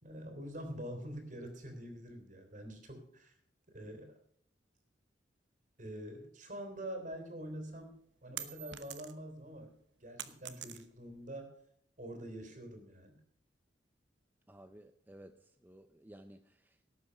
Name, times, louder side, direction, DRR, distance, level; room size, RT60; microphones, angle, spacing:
voice 1, 0.0-3.3 3.7-4.1 5.8-7.9 8.2-9.7 10.0-11.5 12.0-13.2, right 1 dB, 45° right, 5 dB, 3.3 m, -45 dB
sound 1, 7.6-9.4 9.7-11.2, right 11 dB, 80° right, 1.1 m, -46 dB
voice 2, 14.5-16.9, right 1 dB, 10° right, 8 dB, 0.6 m, -56 dB
18.0 x 8.2 x 5.7 m, 0.68 s
head